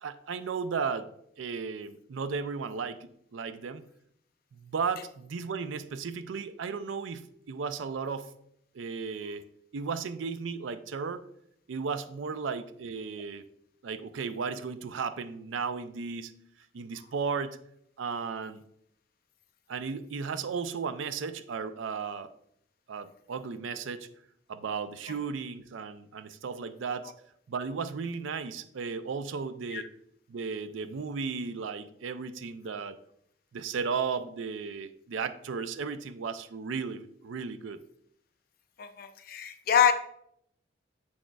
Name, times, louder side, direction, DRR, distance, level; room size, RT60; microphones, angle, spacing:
voice 1, 0.0-1.1 1.4-3.8 4.5-8.3 8.7-9.4 9.7-11.2 11.7-13.4 13.8-16.3 16.7-17.6 18.0-18.6 19.7-22.3 22.9-24.1 24.5-27.1 27.5-29.9 30.3-33.0 33.5-37.8, right 5 dB, 75° right, 12 dB, 0.4 m, -35 dB
voice 2, 38.8-39.9, left 8 dB, 50° left, 6 dB, 0.5 m, -25 dB
7.2 x 6.3 x 2.3 m, 0.71 s
head